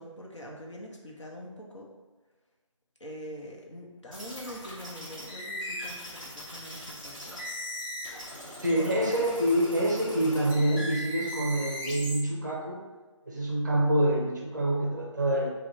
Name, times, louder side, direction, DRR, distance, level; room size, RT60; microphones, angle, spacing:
voice 1, 0.0-1.9 3.0-7.4, equal, 65° left, -2 dB, 0.9 m, -44 dB
sound 1, 4.1-12.2, equal, 10° left, 0.8 m, -39 dB
voice 2, 8.6-12.8 13.3-15.5, right 1 dB, 35° right, -2 dB, 0.6 m, -26 dB
3.7 x 2.3 x 4.2 m, 1.3 s
figure-of-eight pair, 160°, 16 cm